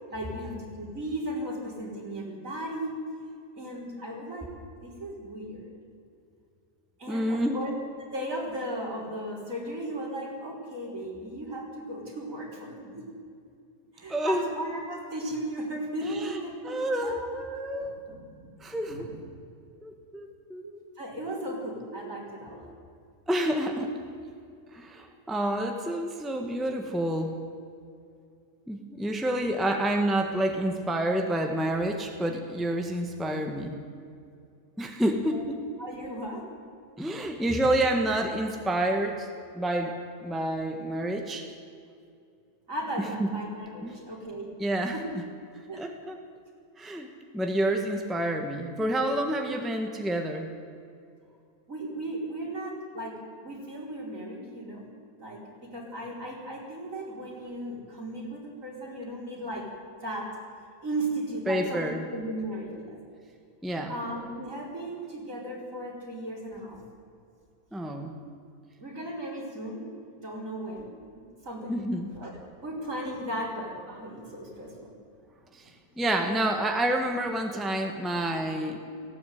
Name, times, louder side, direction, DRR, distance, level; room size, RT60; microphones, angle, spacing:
voice 1, 0.1-2.9 3.6-4.5 4.8-5.8 7.0-7.7 8.0-13.0 13.9-17.3 18.1-18.5 18.9-19.2 20.6-20.7 21.0-22.7 35.3-35.4 35.8-36.5 42.7-44.6 44.9-45.0 45.7-45.9 49.1-49.2 51.7-53.2 53.4-54.9 55.2-59.7 60.0-60.3 60.8-63.0 63.9-66.8 68.8-69.9 70.2-70.9 71.4-71.7 72.1-72.3 72.6-74.9 77.5-77.6, right 1 dB, 55° right, -1 dB, 4.9 m, -36 dB
voice 2, 7.1-7.6 14.1-14.5 16.0-16.4 16.6-18.0 18.6-19.1 19.8-20.6 21.4-21.6 22.7-22.8 23.3-24.0 24.7-27.4 28.7-33.8 34.8-35.5 37.0-39.3 39.5-40.0 40.2-41.5 43.2-43.3 43.8-44.0 44.6-45.0 45.8-46.2 46.8-47.1 47.3-50.5 61.5-62.0 63.6-63.9 67.7-68.1 71.7-72.1 75.5-75.6 76.0-78.8, right 1 dB, ahead, 4 dB, 1.5 m, -28 dB
18.0 x 16.0 x 9.4 m, 2.4 s
omnidirectional pair, 1.6 m